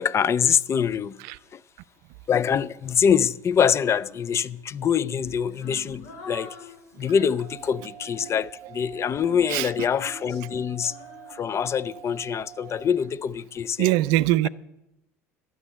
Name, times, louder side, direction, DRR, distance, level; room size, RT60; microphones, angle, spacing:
voice 1, 0.0-1.2 1.5-1.6 2.3-6.6 7.0-11.0 11.3-13.9, left 7 dB, 35° left, 0.4 m, -24 dB
Female singing, 3.5-4.6 5.2-8.4 9.0-12.2, left 2 dB, 70° left, 3.7 m, -46 dB
sound 1, 7.4-12.8, right 11 dB, 25° right, 2.1 m, -46 dB
voice 2, 13.8-14.5, right 16 dB, 65° right, 0.4 m, -22 dB
12.5 x 6.4 x 8.5 m
hypercardioid pair, 70°, 8 cm